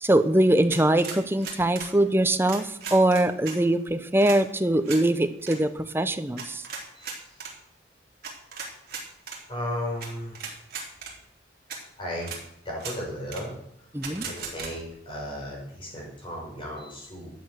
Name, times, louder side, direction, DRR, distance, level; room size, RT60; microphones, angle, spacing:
voice 1, 0.0-6.6 13.9-14.3, right 1 dB, 10° right, 10 dB, 0.7 m, -22 dB
sound 1, 0.7-1.9 2.4-3.6 4.2-4.4 4.8-5.0 5.4-5.6 6.4-7.5 8.2-9.4 10.0-10.1 10.3-11.1 11.7-11.8 12.2-12.4 12.8-13.0 13.3-13.4 14.0-14.7, right 5 dB, 55° right, 3.3 m, -37 dB
voice 2, 6.9-7.4 9.5-10.4 12.0-12.3 12.6-13.5 14.1-17.3, equal, 25° left, -2 dB, 5.9 m, -35 dB
12.5 x 8.7 x 6.4 m, 0.78 s
head